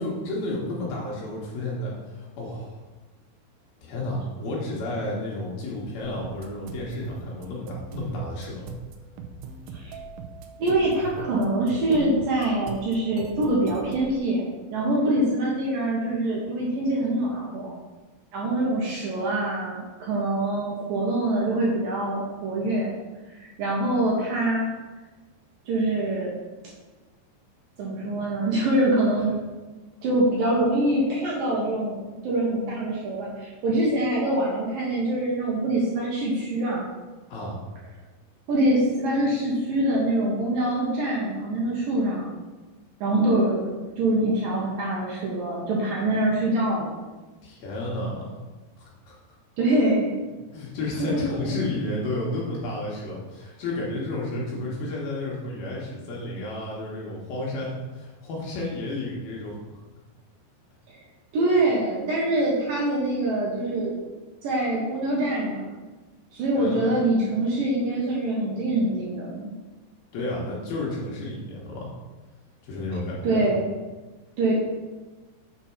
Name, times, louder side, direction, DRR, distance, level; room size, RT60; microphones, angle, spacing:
voice 1, 0.0-2.8 3.8-8.7 29.2-29.3 37.3-37.6 47.4-48.3 48.8-49.2 50.5-59.6 66.5-66.9 70.1-71.9 72.6-73.4, left 2 dB, 65° left, -4 dB, 3.0 m, -32 dB
sound 1, 6.0-14.2, right 6 dB, 90° right, 2.9 m, -40 dB
voice 2, 10.6-17.8 18.3-22.9 23.3-24.7 25.7-26.3 27.8-29.4 30.0-36.9 38.5-42.3 43.0-43.6 44.0-46.9 49.6-50.1 51.0-51.6 60.9-61.0 61.3-63.9 64.4-65.8 66.3-69.5 73.2-73.7 74.4-74.5, right 1 dB, 65° right, -4 dB, 2.4 m, -24 dB
7.4 x 4.4 x 5.8 m, 1.2 s
omnidirectional pair, 5.1 m